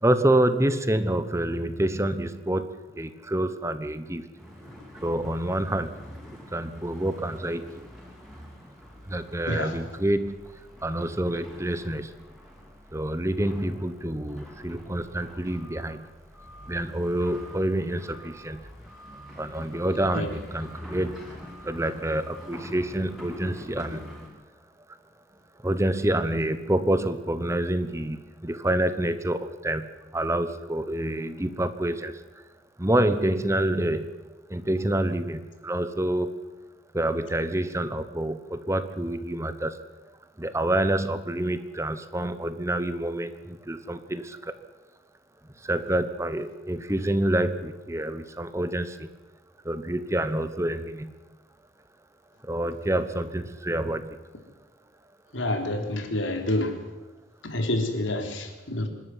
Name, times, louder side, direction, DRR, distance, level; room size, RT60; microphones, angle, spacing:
voice 1, 0.0-4.3 5.0-6.0 6.5-7.6 9.1-10.4 10.8-12.1 12.9-16.1 16.7-18.7 19.4-21.3 21.6-24.1 25.6-32.4 32.8-36.4 36.9-39.8 40.4-44.6 45.6-49.1 49.6-51.1 52.4-54.2, right 1 dB, 15° right, 11 dB, 1.0 m, -27 dB
sound 1, 4.4-24.3, equal, ahead, 6.2 m, -45 dB
voice 2, 55.3-56.8 57.4-58.9, left 1 dB, 80° left, 4 dB, 3.7 m, -28 dB
26.0 x 12.5 x 9.4 m, 1.2 s
head